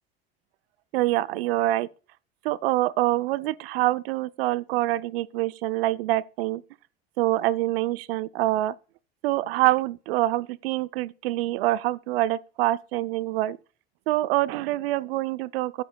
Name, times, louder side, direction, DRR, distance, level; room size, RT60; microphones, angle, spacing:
voice 1, 0.9-1.9 2.4-6.6 7.2-8.7 9.2-13.6 14.1-15.8, right 16 dB, 75° right, 0.6 m, -25 dB
14.0 x 11.5 x 2.3 m
hypercardioid pair, 75°, 30 cm